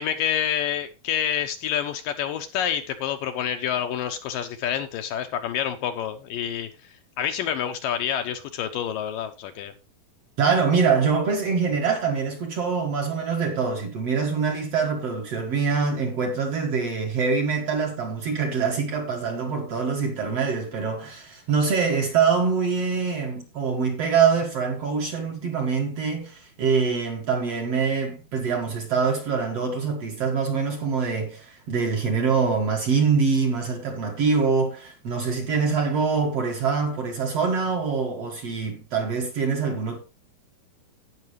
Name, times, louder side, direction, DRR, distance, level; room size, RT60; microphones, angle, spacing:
voice 1, 0.0-9.7, left 9 dB, 75° left, 2.3 m, -28 dB
voice 2, 10.4-40.0, right 5 dB, 50° right, 2.1 m, -24 dB
16.5 x 5.8 x 3.1 m
omnidirectional pair, 4.4 m